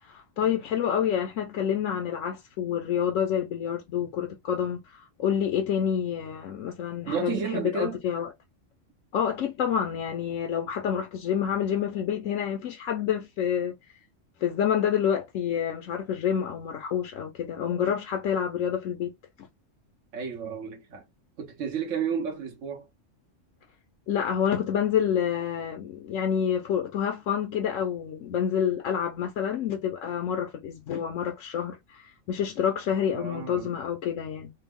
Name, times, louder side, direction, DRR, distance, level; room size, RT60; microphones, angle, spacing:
voice 1, 0.0-8.3 9.1-13.8 14.4-19.1 19.4-19.5 24.1-34.5, left 8 dB, 85° left, 1.1 m, -28 dB
voice 2, 7.1-8.0 20.1-21.0 21.4-22.9 33.1-33.7, right 6 dB, 80° right, 1.2 m, -32 dB
3.4 x 2.1 x 3.5 m
omnidirectional pair, 1.3 m